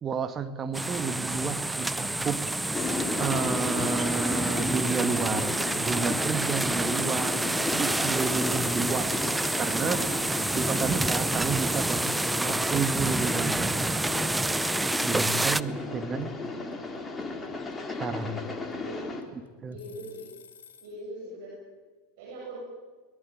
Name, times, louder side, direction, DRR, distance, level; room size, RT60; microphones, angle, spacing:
voice 1, 0.0-2.4 3.2-9.2 9.6-10.0 10.5-13.7 15.0-16.3 18.0-18.4 19.3-19.8, right 5 dB, 30° right, 9 dB, 2.0 m, -31 dB
sound 1, 0.7-15.6, right 2 dB, 10° right, 0.7 m, -28 dB
sound 2, 2.7-19.2, left 3 dB, 15° left, 3.8 m, -35 dB
sound 3, 15.7-21.0, left 8 dB, 75° left, 3.6 m, -55 dB
voice 2, 18.7-19.1 19.7-20.2 20.8-21.5 22.2-22.6, right 1 dB, 60° right, -3 dB, 7.5 m, -41 dB
22.0 x 21.5 x 9.4 m, 1.4 s
figure-of-eight pair, 85°, 0 cm